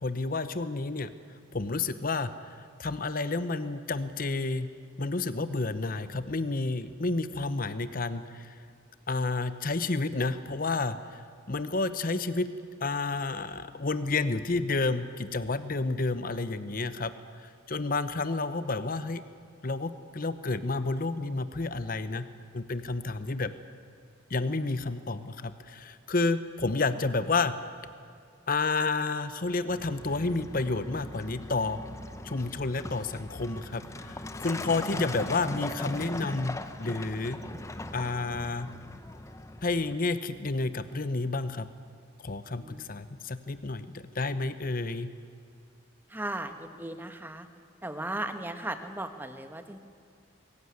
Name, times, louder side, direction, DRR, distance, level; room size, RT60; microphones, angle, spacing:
voice 1, 0.0-1.1 1.5-4.7 5.0-8.5 9.1-11.2 11.5-12.5 12.8-17.1 17.7-19.2 19.6-22.3 22.5-23.5 24.3-27.5 28.5-31.8 32.2-37.4 37.9-38.7 39.6-41.7 42.2-45.1, left 3 dB, 45° left, 12 dB, 0.9 m, -30 dB
Truck, 29.7-40.0, left 2 dB, 15° left, 0.8 m, -40 dB
voice 2, 46.1-47.5 47.8-49.8, right 1 dB, 10° right, 8 dB, 1.2 m, -37 dB
23.0 x 15.0 x 9.6 m, 2.4 s
head